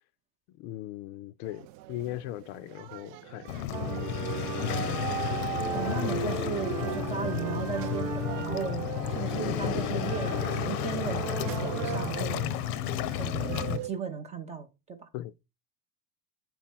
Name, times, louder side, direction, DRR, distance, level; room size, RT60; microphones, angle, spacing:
voice 1, 0.5-4.1 4.6-5.0 15.1-15.4, left 15 dB, 55° left, 0.5 m, -40 dB
sound 1, 1.4-13.9, right 15 dB, 75° right, 0.6 m, -44 dB
Waves surf, 3.5-13.8, left 11 dB, 80° left, 0.8 m, -32 dB
sound 2, 3.7-12.2, right 8 dB, 35° right, 0.9 m, -36 dB
voice 2, 3.8-4.2 4.7-5.0 5.7-11.3 11.6-12.5 13.2-15.1, right 7 dB, 15° right, 0.4 m, -36 dB
8.0 x 4.4 x 6.0 m
cardioid pair, 160°, 46 cm